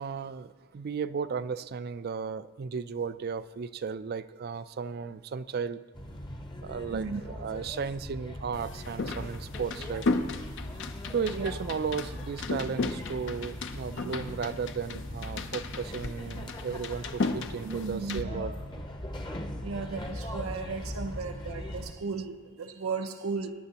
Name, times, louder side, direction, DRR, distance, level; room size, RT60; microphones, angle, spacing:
voice 1, 0.0-5.8 6.6-10.1 11.1-18.5, right 6 dB, 50° right, 14 dB, 0.4 m, -35 dB
sound 1, 5.9-21.9, left 1 dB, 20° left, 0.8 m, -40 dB
sound 2, 8.5-18.2, left 3 dB, 60° left, 0.7 m, -35 dB
voice 2, 17.6-18.5 19.6-23.5, right 4 dB, 90° right, 5 dB, 0.7 m, -35 dB
21.0 x 10.5 x 2.9 m, 1.4 s
head